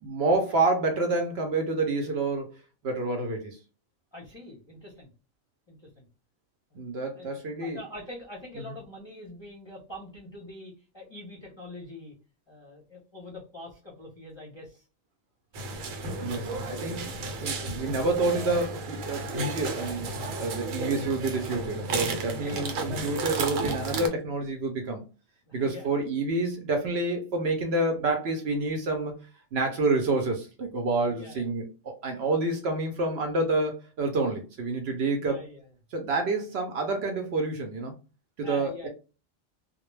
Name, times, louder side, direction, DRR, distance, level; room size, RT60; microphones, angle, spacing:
voice 1, 0.0-2.6 2.8-3.6 6.7-7.8 16.2-17.1 17.4-20.1 20.4-25.0 25.5-29.1 29.5-35.4 35.9-37.9 38.4-38.9, right 3 dB, 60° right, 0.8 m, -28 dB
voice 2, 4.1-5.1 5.7-6.0 7.1-12.1 12.5-14.8 22.4-22.8 25.4-26.1 31.1-31.5 32.2-32.3 35.2-35.7 38.4-38.9, left 1 dB, 30° left, 0.6 m, -44 dB
sound 1, 15.5-24.1, right 2 dB, 85° right, 1.0 m, -33 dB
2.2 x 2.2 x 3.1 m
omnidirectional pair, 1.3 m